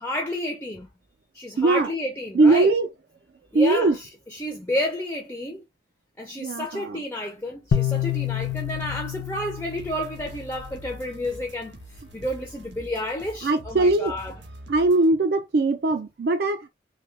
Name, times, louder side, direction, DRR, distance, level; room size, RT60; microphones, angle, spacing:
voice 1, 0.0-0.9 1.3-2.7 3.5-5.6 6.2-11.8 12.1-14.3, left 1 dB, 10° left, 0.4 m, -31 dB
voice 2, 1.6-1.9 2.3-2.9 3.5-4.0 6.4-7.0 13.4-14.1 14.7-16.7, right 2 dB, 60° right, 0.3 m, -20 dB
sound 1, 7.7-11.0, left 9 dB, 85° left, 0.4 m, -28 dB
sound 2, 8.4-9.1 9.3-15.1, right 1 dB, 90° right, 0.7 m, -45 dB
2.6 x 2.2 x 3.1 m
head